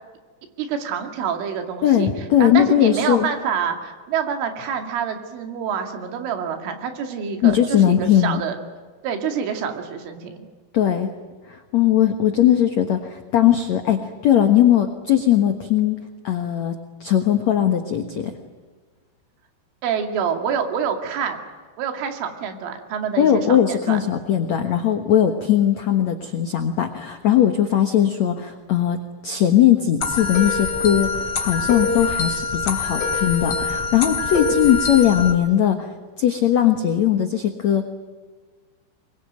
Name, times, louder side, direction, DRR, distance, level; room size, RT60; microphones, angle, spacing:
voice 1, 0.6-2.1 2.4-8.6 9.0-10.4 19.8-21.4 21.8-24.0, right 7 dB, 90° right, 5 dB, 4.9 m, -27 dB
voice 2, 1.8-3.3 7.4-8.4 10.7-11.1 11.5-16.0 16.2-18.3 23.2-29.0 29.2-35.9 36.2-37.8, left 10 dB, 85° left, 6 dB, 1.5 m, -19 dB
sound 1, 30.0-35.3, left 4 dB, 35° left, 3.8 m, -24 dB
24.0 x 22.5 x 9.2 m, 1.4 s
omnidirectional pair, 5.5 m